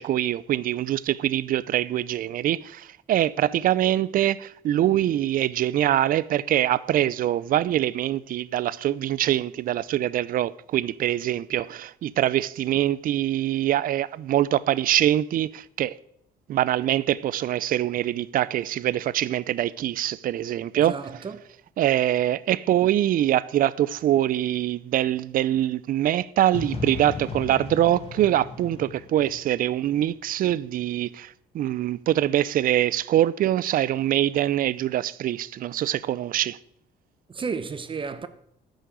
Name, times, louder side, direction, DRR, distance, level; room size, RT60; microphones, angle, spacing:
voice 1, 0.0-16.0 16.5-21.0 21.8-36.6, right 12 dB, 55° right, 0.6 m, -24 dB
voice 2, 20.7-21.4 37.3-38.3, right 5 dB, 30° right, 0.9 m, -32 dB
sound 1, 26.5-30.4, left 4 dB, 35° left, 1.9 m, -36 dB
10.5 x 6.5 x 8.1 m
cardioid pair, 110°, 17 cm